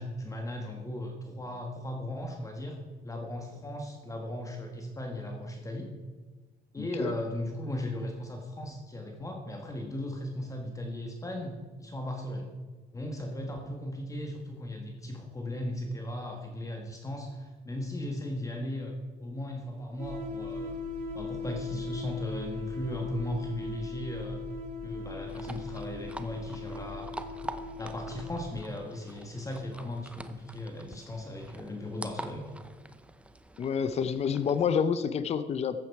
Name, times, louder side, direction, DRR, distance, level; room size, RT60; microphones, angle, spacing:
voice 1, 0.0-2.8 3.0-5.9 6.7-12.5 12.9-18.9 19.2-20.8 21.1-24.4 24.8-27.4 27.8-32.5, left 1 dB, 20° left, 2 dB, 1.5 m, -37 dB
voice 2, 6.8-7.1 33.6-35.8, left 7 dB, 40° left, 12 dB, 0.6 m, -28 dB
sound 1, 20.0-28.4, left 3 dB, 55° right, 4.4 m, -39 dB
sound 2, 25.3-34.7, right 1 dB, 5° right, 0.7 m, -46 dB
14.5 x 9.0 x 4.7 m, 1.4 s
cardioid pair, 110°, 17 cm